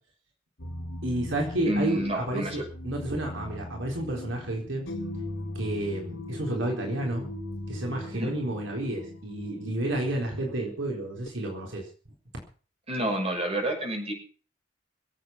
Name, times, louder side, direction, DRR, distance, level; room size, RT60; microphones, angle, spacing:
sound 1, 0.6-11.3, left 1 dB, 75° left, 3.5 m, -39 dB
voice 1, 1.0-4.9 5.5-7.3 7.7-11.9, right 1 dB, 75° right, 1 dB, 4.1 m, -31 dB
voice 2, 1.7-2.6 8.1-8.3 12.9-14.1, right 1 dB, 30° right, 1 dB, 6.3 m, -29 dB
24.5 x 8.5 x 5.9 m, 0.41 s
head